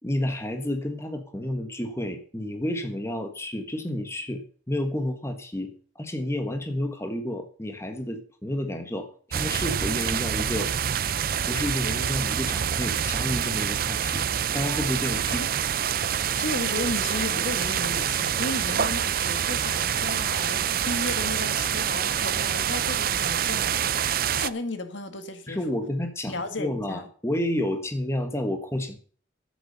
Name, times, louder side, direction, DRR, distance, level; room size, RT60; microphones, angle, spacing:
voice 1, 0.0-10.7 11.4-14.3 14.5-15.4 18.1-18.2 25.5-29.0, left 1 dB, 15° left, 1.5 m, -30 dB
sound 1, 9.3-24.5, right 8 dB, 50° right, 0.5 m, -26 dB
voice 2, 16.4-25.6 26.3-27.0, left 2 dB, 75° left, 1.8 m, -34 dB
11.0 x 8.5 x 6.6 m
head